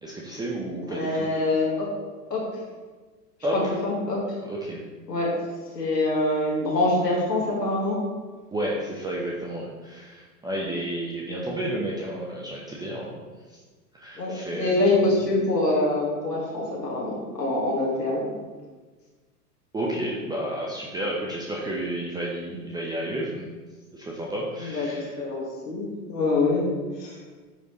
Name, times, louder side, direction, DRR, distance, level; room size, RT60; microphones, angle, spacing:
voice 1, 0.0-1.3 3.4-3.7 4.4-4.8 8.5-13.1 13.5-13.6 13.9-14.8 19.7-23.5 23.9-25.2, right 1 dB, 10° right, -4 dB, 0.7 m, -31 dB
voice 2, 0.9-1.9 2.3-2.4 3.8-4.2 5.1-5.3 5.7-8.0 14.2-18.3 24.6-26.6 27.0-27.2, left 2 dB, 90° left, -4 dB, 1.7 m, -25 dB
9.0 x 4.7 x 3.0 m, 1.3 s
figure-of-eight pair, 95°, 47 cm